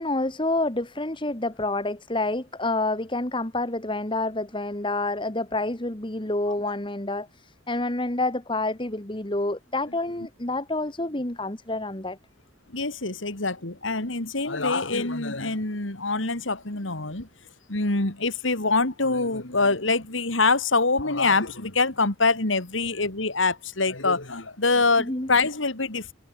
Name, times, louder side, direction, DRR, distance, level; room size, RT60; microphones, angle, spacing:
voice 1, 0.0-12.2 25.0-25.3, left 2 dB, 25° left, 2.1 m, -28 dB
voice 2, 12.7-17.3 17.7-26.1, left 3 dB, 80° left, 3.1 m, -25 dB
head